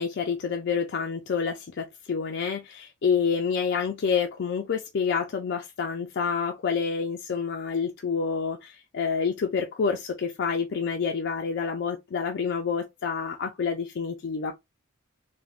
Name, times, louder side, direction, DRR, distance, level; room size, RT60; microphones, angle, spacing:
voice 1, 0.0-14.5, left 6 dB, 50° left, 0.3 m, -28 dB
3.3 x 2.1 x 2.3 m
head